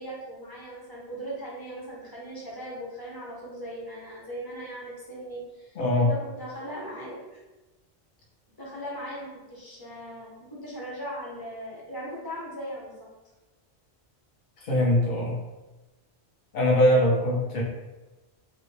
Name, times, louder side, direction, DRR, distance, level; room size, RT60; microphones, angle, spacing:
voice 1, 0.0-7.4 8.6-13.1, right 1 dB, 20° left, -5 dB, 0.8 m, -38 dB
voice 2, 5.8-6.1 14.6-15.4 16.5-17.6, left 1 dB, 50° left, -4 dB, 0.9 m, -22 dB
2.8 x 2.7 x 3.2 m, 1.1 s
omnidirectional pair, 1.1 m